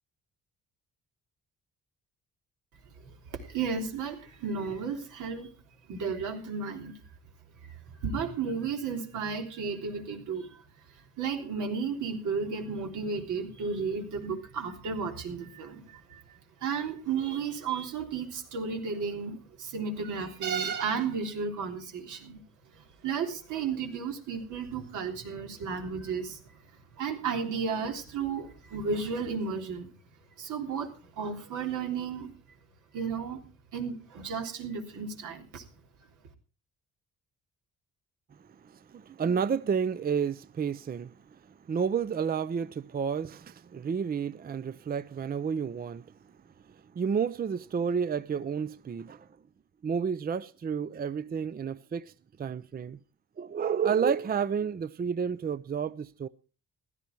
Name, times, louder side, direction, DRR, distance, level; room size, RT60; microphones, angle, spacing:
voice 1, 3.0-5.5 5.9-7.0 7.6-10.6 10.9-22.4 22.7-26.6 27.0-29.9 30.4-32.4 32.9-33.5 33.7-35.7, right 5 dB, 80° right, 3.5 m, -33 dB
voice 2, 38.4-46.1 46.6-49.3 49.8-53.0 53.4-56.3, right 6 dB, 30° right, 0.6 m, -31 dB
16.0 x 13.0 x 4.6 m
cardioid pair, 90°, 30 cm